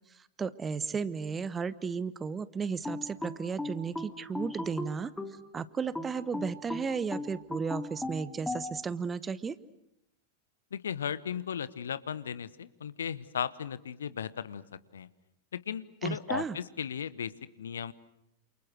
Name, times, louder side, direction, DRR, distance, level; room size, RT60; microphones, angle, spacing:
voice 1, 0.4-5.1 5.5-9.6 16.0-16.6, right 5 dB, 20° right, 18 dB, 1.0 m, -34 dB
sound 1, 2.8-5.4 6.0-8.7, left 2 dB, 5° left, 2.6 m, -37 dB
voice 2, 10.7-14.6 14.9-15.1 15.5-17.3 17.6-17.9, left 8 dB, 65° left, 18 dB, 1.0 m, -36 dB
28.5 x 28.5 x 6.5 m, 0.83 s
figure-of-eight pair, 90°, 0 cm